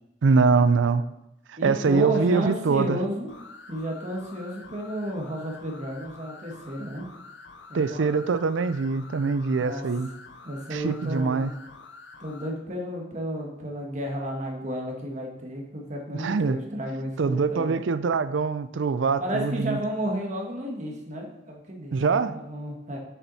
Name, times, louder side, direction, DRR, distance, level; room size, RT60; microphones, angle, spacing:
voice 1, 0.2-1.1 1.5-3.0 7.7-10.1 10.7-11.5 16.1-16.6 17.2-19.8 21.9-22.4, right 4 dB, 80° right, 0.4 m, -23 dB
voice 2, 1.6-3.3 3.7-7.1 7.7-8.2 9.6-9.8 10.4-11.4 12.2-17.8 19.2-23.0, equal, 40° right, 1.6 m, -32 dB
sound 1, 3.3-12.5, left 4 dB, 70° left, 0.8 m, -47 dB
7.1 x 7.1 x 4.1 m
head